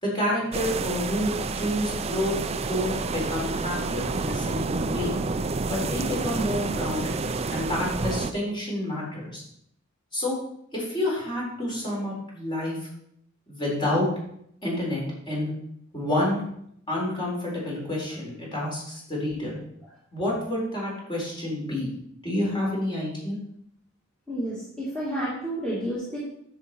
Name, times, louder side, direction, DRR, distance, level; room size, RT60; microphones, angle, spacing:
voice 1, 0.0-5.1 5.7-7.1 7.5-9.4 10.1-10.4 10.7-12.8 13.5-14.1 14.6-15.5 15.9-16.4 16.9-19.6 20.1-21.9 22.2-23.4, left 1 dB, 25° left, -4 dB, 4.2 m, -29 dB
sound 1, 0.5-8.3, right 3 dB, 30° right, 0.5 m, -29 dB
voice 2, 24.3-26.2, equal, 5° left, -9 dB, 2.3 m, -30 dB
10.0 x 7.2 x 4.6 m, 0.72 s
head